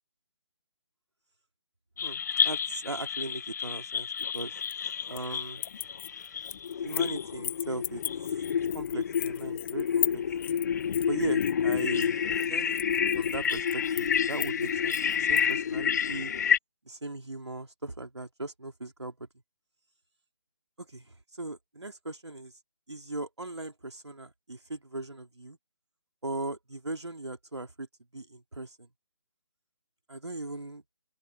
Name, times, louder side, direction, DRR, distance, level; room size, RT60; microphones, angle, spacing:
sound 1, 2.0-16.6, left 8 dB, 40° left, 0.9 m, -29 dB
voice 1, 2.0-4.5 5.1-5.6 6.8-8.0 8.7-10.2 11.1-12.2 12.5-12.8 13.2-16.3 16.8-19.3 20.8-22.5 22.9-25.6 26.2-27.9 28.1-28.9 30.1-30.8, right 2 dB, 80° right, 3.3 m, -38 dB
sound 2, 4.2-5.3 5.6-7.1 7.4-15.5, left 14 dB, 10° left, 0.9 m, -37 dB
open air
figure-of-eight pair, 150°, 14 cm